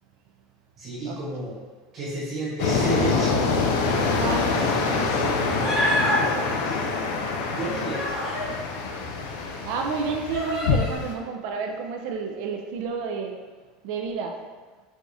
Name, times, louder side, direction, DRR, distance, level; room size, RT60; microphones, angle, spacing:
voice 1, 0.8-1.6 1.9-3.6 4.4-6.9 7.5-8.1, right 2 dB, 30° right, -7 dB, 1.0 m, -32 dB
sound 1, 2.6-11.1, left 4 dB, 85° left, 0.4 m, -25 dB
voice 2, 3.9-4.5 9.6-13.4 13.8-14.4, right 5 dB, 60° right, 3 dB, 0.3 m, -30 dB
Human voice, 5.6-6.2 7.4-8.5 9.3-9.4 10.3-11.0, equal, 15° left, 1.0 m, -27 dB
4.6 x 2.4 x 2.6 m, 1.3 s
supercardioid pair, 160°, 0 cm